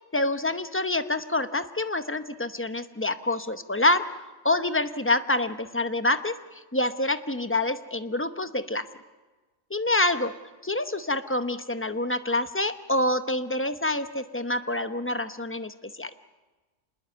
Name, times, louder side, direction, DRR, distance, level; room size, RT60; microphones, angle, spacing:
voice 1, 0.1-4.1 4.4-8.9 9.7-10.4 10.6-16.1, left 2 dB, 10° left, 10 dB, 0.8 m, -27 dB
27.0 x 21.0 x 8.1 m, 1.3 s
omnidirectional pair, 1.3 m